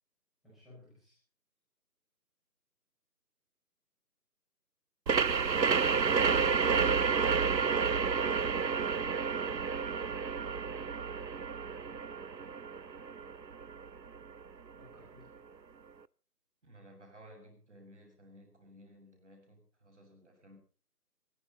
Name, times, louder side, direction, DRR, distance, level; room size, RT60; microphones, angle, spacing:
voice 1, 0.4-1.2 14.8-15.4, left 1 dB, ahead, -8 dB, 5.0 m, -58 dB
sound 1, 5.1-14.4, right 5 dB, 85° right, 0.8 m, -30 dB
voice 2, 16.6-20.6, right 1 dB, 45° right, 4 dB, 6.8 m, -56 dB
23.5 x 12.5 x 4.0 m, 0.37 s
figure-of-eight pair, 160°, 49 cm